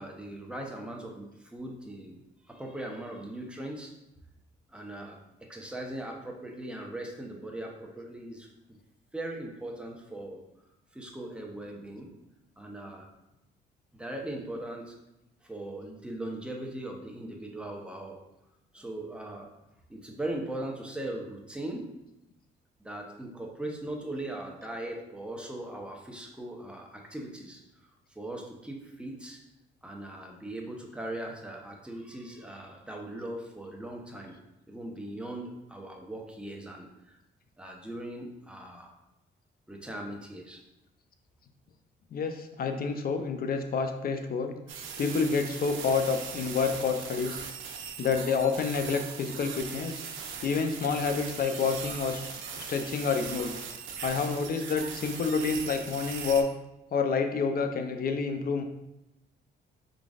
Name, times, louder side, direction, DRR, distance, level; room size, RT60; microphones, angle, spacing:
voice 1, 0.0-2.2 2.5-3.9 4.7-5.2 5.5-8.5 9.1-10.4 10.9-12.1 12.6-13.1 13.9-14.9 15.4-18.2 18.7-19.5 19.9-21.9 22.8-29.4 29.8-34.3 34.7-37.2 37.6-38.9 39.7-40.6 50.3-50.4, right 1 dB, 5° right, 0 dB, 0.8 m, -39 dB
voice 2, 42.1-44.5 45.0-47.4 48.0-50.0 50.4-52.3 52.6-53.6 54.0-56.5 56.9-58.6, left 5 dB, 50° left, 7 dB, 0.5 m, -28 dB
sound 1, 44.7-56.4, right 6 dB, 75° right, 0.6 m, -40 dB
4.7 x 3.9 x 2.4 m, 0.89 s
cardioid pair, 90°, 20 cm